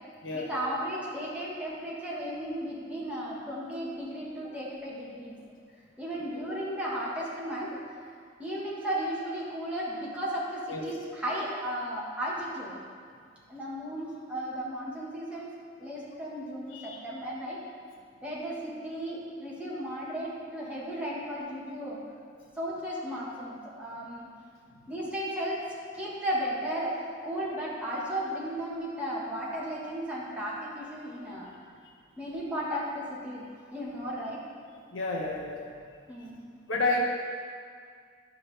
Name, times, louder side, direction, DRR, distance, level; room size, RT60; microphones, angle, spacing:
voice 1, 0.3-5.4 6.0-7.8 8.4-12.8 13.5-15.5 15.8-17.6 18.2-22.0 22.6-24.3 24.9-25.7 25.9-31.5 32.2-34.4 36.1-36.4, equal, 5° right, -7 dB, 1.5 m, -35 dB
voice 2, 34.9-35.7 36.7-37.0, left 3 dB, 85° left, -1 dB, 0.9 m, -30 dB
11.5 x 5.8 x 3.4 m, 2.1 s
head